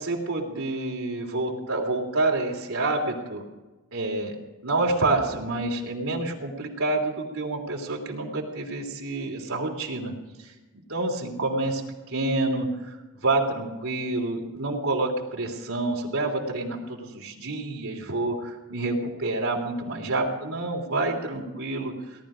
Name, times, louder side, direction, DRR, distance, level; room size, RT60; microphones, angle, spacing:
voice 1, 0.0-3.4 3.9-4.4 4.6-10.1 10.4-11.8 12.1-13.0 13.2-21.9, right 2 dB, 70° right, 0 dB, 3.2 m, -28 dB
18.5 x 12.0 x 5.1 m, 1.2 s
head